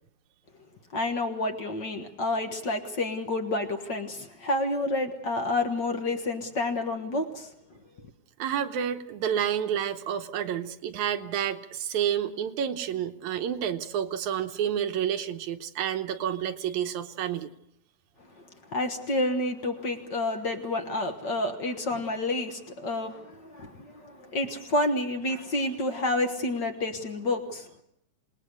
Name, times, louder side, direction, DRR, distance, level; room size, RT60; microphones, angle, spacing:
voice 1, 0.9-7.5 18.7-27.8, left 2 dB, 45° left, 5 dB, 1.7 m, -29 dB
voice 2, 8.4-17.5, right 9 dB, 80° right, 7 dB, 2.4 m, -29 dB
27.5 x 19.5 x 6.5 m, 0.75 s
omnidirectional pair, 3.3 m